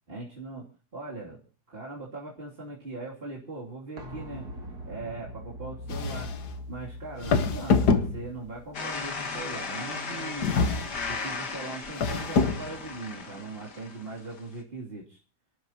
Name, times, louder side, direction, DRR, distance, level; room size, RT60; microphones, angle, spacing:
voice 1, 0.1-4.5 4.8-6.3 6.7-10.6 11.1-15.2, right 3 dB, 35° right, -4 dB, 3.1 m, -40 dB
sound 1, 4.0-9.6 9.9-10.0, left 1 dB, 70° right, 3.1 m, -42 dB
sound 2, 5.9-6.5 7.2-8.6 10.4-11.2 11.9-12.8, left 4 dB, 75° left, 1.7 m, -25 dB
sound 3, 8.7-14.5, left 4 dB, 90° left, 2.4 m, -36 dB
29.0 x 12.0 x 2.9 m, 0.36 s
omnidirectional pair, 1.7 m